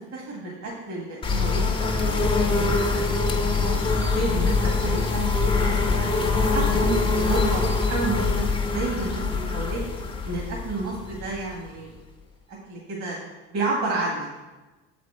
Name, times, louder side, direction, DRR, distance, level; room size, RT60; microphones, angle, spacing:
voice 1, 0.1-6.1 6.5-8.3 8.6-9.8 10.2-11.9 12.7-13.2 13.5-14.4, right 3 dB, 50° right, -3 dB, 1.7 m, -31 dB
sound 1, 1.2-11.8, left 3 dB, 15° left, 0.8 m, -24 dB
7.2 x 4.3 x 4.3 m, 1.1 s
supercardioid pair, 95°, 34 cm